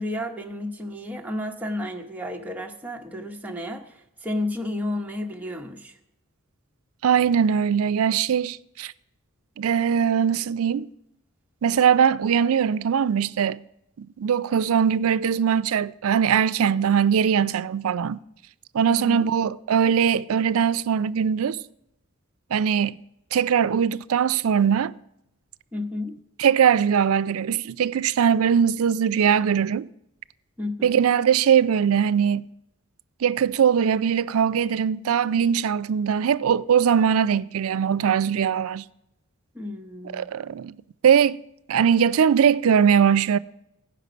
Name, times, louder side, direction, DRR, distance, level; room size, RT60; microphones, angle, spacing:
voice 1, 0.0-5.9 18.8-19.2 25.7-26.1 30.6-31.0 39.5-40.3, left 1 dB, 5° right, 0.8 m, -32 dB
voice 2, 7.0-8.9 9.6-10.9 11.6-13.6 14.0-18.2 18.7-21.6 22.5-23.0 23.3-24.9 26.4-29.9 30.8-32.5 33.2-38.9 40.1-40.7 41.0-41.4 41.7-43.4, right 7 dB, 80° right, 0.4 m, -21 dB
17.0 x 5.9 x 5.1 m
head